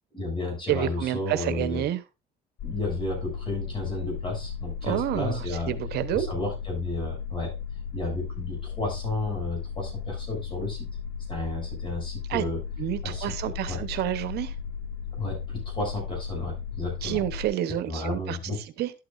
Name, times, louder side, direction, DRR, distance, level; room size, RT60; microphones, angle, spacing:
voice 1, 0.1-1.9 2.6-5.7 6.1-7.5 7.9-10.9 11.3-12.6 13.0-13.3 13.7-13.8 15.1-17.2 17.8-18.6, left 2 dB, 30° left, 6.9 m, -32 dB
voice 2, 0.7-2.0 4.8-6.3 12.3-12.4 12.8-14.5 17.0-18.9, right 13 dB, 75° right, 0.9 m, -29 dB
sound 1, 2.6-17.5, left 6 dB, 85° left, 1.2 m, -35 dB
12.0 x 8.8 x 2.5 m
cardioid pair, 110°, 17 cm